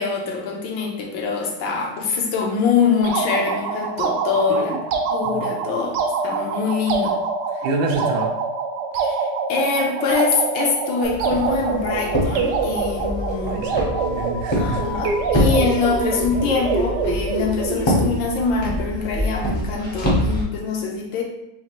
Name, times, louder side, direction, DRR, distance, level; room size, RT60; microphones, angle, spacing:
voice 1, 0.0-4.8 5.1-6.0 6.2-7.2 8.9-13.6 14.5-21.2, left 5 dB, 75° left, 0 dB, 1.5 m, -24 dB
sound 1, 3.0-18.2, right 4 dB, 75° right, 1.0 m, -25 dB
voice 2, 7.6-8.3 13.4-15.0, right 3 dB, 90° right, 2 dB, 1.6 m, -27 dB
Walk footsteps, 11.0-20.4, equal, 40° left, 0.4 m, -25 dB
sound 2, 11.5-18.7, left 3 dB, 35° right, 0.8 m, -38 dB
5.7 x 2.4 x 3.0 m, 0.83 s
omnidirectional pair, 2.2 m